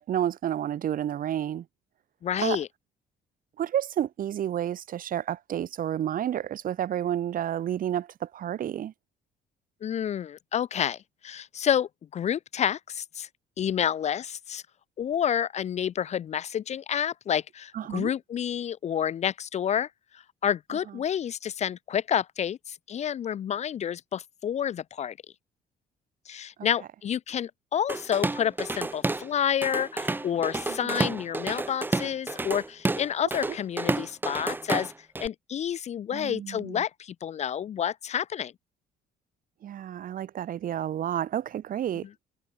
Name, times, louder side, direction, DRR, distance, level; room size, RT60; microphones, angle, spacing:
voice 1, 0.0-1.6 2.4-2.6 3.6-8.9 17.7-18.1 26.6-26.7 30.8-31.2 33.5-33.6 36.1-36.8 39.6-42.1, right 10 dB, 55° right, 2.4 m, -30 dB
voice 2, 2.2-2.7 9.8-11.0 11.2-13.3 13.6-14.6 15.0-19.9 20.4-25.1 26.3-34.9 35.2-38.5, left 9 dB, 40° left, 0.6 m, -29 dB
Drum kit / Drum, 27.9-29.3 29.6-35.3, right 2 dB, 10° right, 1.2 m, -30 dB
cardioid pair, 110°, 17 cm